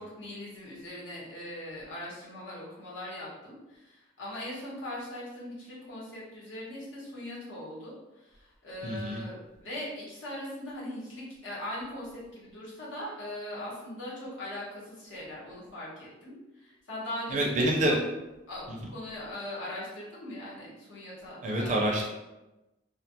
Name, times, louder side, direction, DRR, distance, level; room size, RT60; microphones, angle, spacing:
voice 1, 0.0-18.0 18.5-22.1, left 1 dB, 80° left, -7 dB, 1.0 m, -40 dB
voice 2, 8.8-9.2 17.3-18.0 21.4-22.1, right 1 dB, 40° right, -1 dB, 0.4 m, -27 dB
2.2 x 2.1 x 2.7 m, 1.0 s
head